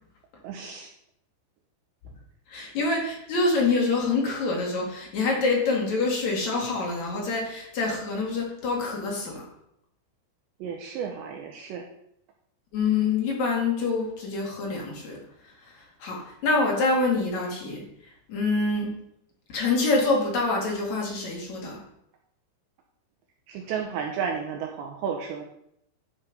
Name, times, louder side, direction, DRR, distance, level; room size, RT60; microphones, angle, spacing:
voice 1, 0.4-0.9 10.6-11.9 23.5-25.4, right 7 dB, 80° right, 2 dB, 2.7 m, -32 dB
voice 2, 2.5-9.4 12.7-15.2 15.7-17.8 18.3-18.9 19.5-21.8, left 3 dB, 45° left, -1 dB, 2.6 m, -26 dB
11.5 x 5.8 x 5.4 m, 0.75 s
omnidirectional pair, 6.0 m